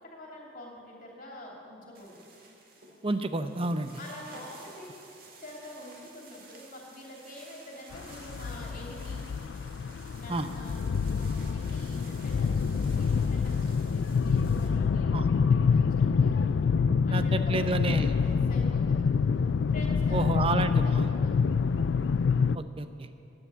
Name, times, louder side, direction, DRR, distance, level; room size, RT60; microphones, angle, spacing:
voice 1, 0.0-2.1 3.9-4.9 5.2-9.2 10.1-16.5 17.0-18.2 18.5-19.0 19.7-21.4, left 1 dB, 45° left, -2 dB, 2.9 m, -46 dB
sound 1, 1.9-14.7, right 3 dB, 50° right, 2.1 m, -52 dB
voice 2, 3.0-3.9 10.3-10.5 15.1-15.3 17.1-18.1 20.1-21.1 22.5-23.1, right 2 dB, 30° right, 9 dB, 0.6 m, -30 dB
sound 2, 7.9-22.6, left 5 dB, 70° left, 0.4 m, -26 dB
13.5 x 9.9 x 8.2 m, 2.8 s
head